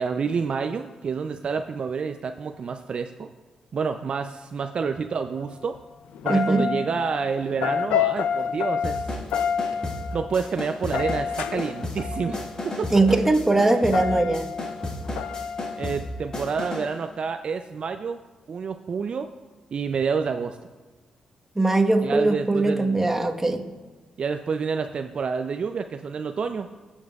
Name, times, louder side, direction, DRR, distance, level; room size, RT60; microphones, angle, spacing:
voice 1, 0.0-3.3 3.7-5.8 6.2-9.2 10.1-12.4 12.6-12.9 15.8-18.2 18.5-19.3 19.7-20.6 22.0-23.1 24.2-26.7, right 5 dB, 55° right, 7 dB, 0.4 m, -28 dB
sound 1, 5.4-5.7 6.1-13.1 13.8-16.4, left 8 dB, 85° left, 0.4 m, -29 dB
voice 2, 6.3-6.7 12.9-14.5 21.5-23.6, right 2 dB, 15° right, 3 dB, 1.2 m, -21 dB
sound 2, 8.8-17.0, left 1 dB, 40° left, 1.7 m, -34 dB
16.5 x 7.2 x 2.4 m, 1.3 s
supercardioid pair, 55°, 2 cm